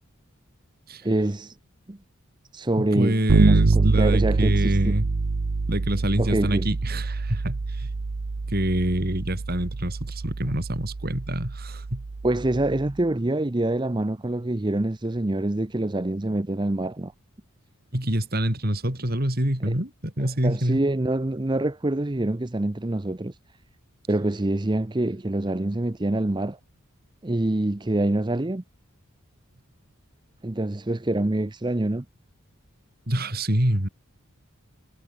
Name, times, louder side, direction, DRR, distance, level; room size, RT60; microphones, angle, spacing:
voice 1, 1.0-1.6 1.9-2.0 2.5-4.9 6.2-6.7 12.2-17.1 19.7-19.8 20.4-23.4 24.1-26.6 27.2-28.6 30.4-32.0, right 1 dB, 20° right, 0.6 m, -25 dB
voice 2, 2.8-5.1 5.7-7.9 8.5-12.0 17.9-20.9 33.1-33.9, right 1 dB, 45° right, 4.3 m, -26 dB
Bass guitar, 3.3-13.0, right 3 dB, 80° right, 0.8 m, -25 dB
head